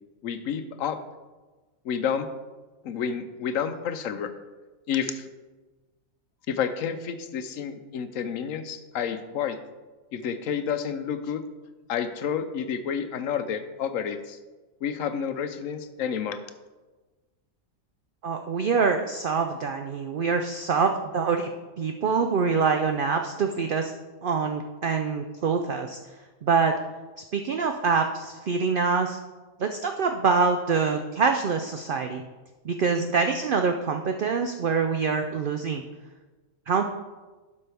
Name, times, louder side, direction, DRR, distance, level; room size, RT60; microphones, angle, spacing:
voice 1, 0.2-1.0 1.8-2.3 2.8-4.3 4.9-5.3 6.5-9.6 10.1-11.4 11.9-14.4 14.8-16.4, left 7 dB, 70° left, 10 dB, 1.0 m, -30 dB
voice 2, 18.2-21.5 21.8-23.9 24.2-26.0 26.4-26.7 27.3-29.2 29.6-32.2 32.6-35.8 36.7-36.8, right 5 dB, 80° right, 5 dB, 0.4 m, -25 dB
11.5 x 5.5 x 3.4 m, 1.2 s
omnidirectional pair, 1.5 m